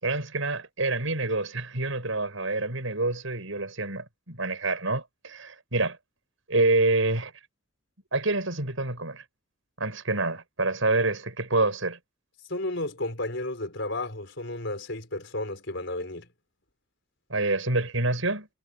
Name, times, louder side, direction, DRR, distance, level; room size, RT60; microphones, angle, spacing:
voice 1, 0.0-6.0 6.5-7.3 8.1-9.2 9.8-12.0 17.3-18.5, right 2 dB, 80° right, 5.8 m, -27 dB
voice 2, 12.5-16.3, left 2 dB, 65° left, 5.1 m, -32 dB
head